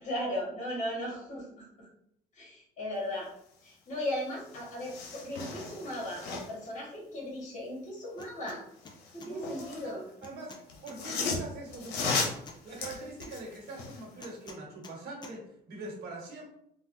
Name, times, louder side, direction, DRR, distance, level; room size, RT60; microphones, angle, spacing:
voice 1, 0.0-1.7 2.3-3.3 3.6-8.6 9.1-10.1, left 1 dB, 45° left, -3 dB, 1.4 m, -37 dB
sound 1, 4.1-4.2 4.4-6.7 8.8-9.9 10.7-14.1 14.5-14.6, left 4 dB, 85° left, 0.6 m, -36 dB
sound 2, 8.2-8.6 8.8-9.3 10.2-11.3 12.2-13.3 14.2-15.0 15.2-15.3, left 3 dB, 25° left, 0.5 m, -49 dB
voice 2, 9.2-9.9 10.2-16.5, right 2 dB, 70° right, -2 dB, 1.2 m, -44 dB
3.4 x 2.2 x 2.6 m, 0.74 s
cardioid pair, 110°, 17 cm